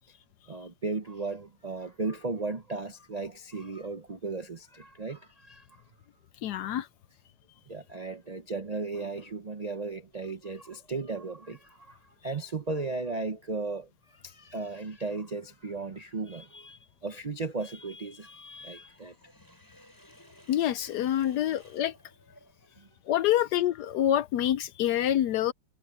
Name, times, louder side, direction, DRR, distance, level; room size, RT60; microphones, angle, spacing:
voice 1, 0.5-5.7 6.6-6.7 7.7-19.2 22.8-22.9, right 3 dB, 55° right, 0.4 m, -36 dB
voice 2, 6.4-6.9 20.5-21.9 23.1-25.5, left 11 dB, 70° left, 1.0 m, -26 dB
Sink (filling or washing), 18.9-22.8, equal, 10° left, 7.6 m, -56 dB
omnidirectional pair, 2.0 m